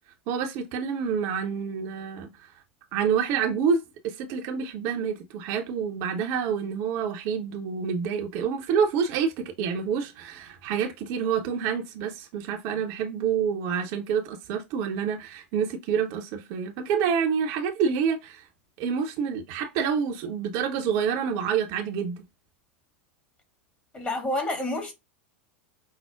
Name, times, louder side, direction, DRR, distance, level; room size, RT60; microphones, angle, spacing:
voice 1, 0.3-2.5 2.9-18.5 18.8-22.2, right 7 dB, 50° right, 0.7 m, -28 dB
voice 2, 23.9-24.9, left 1 dB, 20° left, 1.3 m, -29 dB
5.5 x 2.1 x 2.2 m
figure-of-eight pair, 85°, 6 cm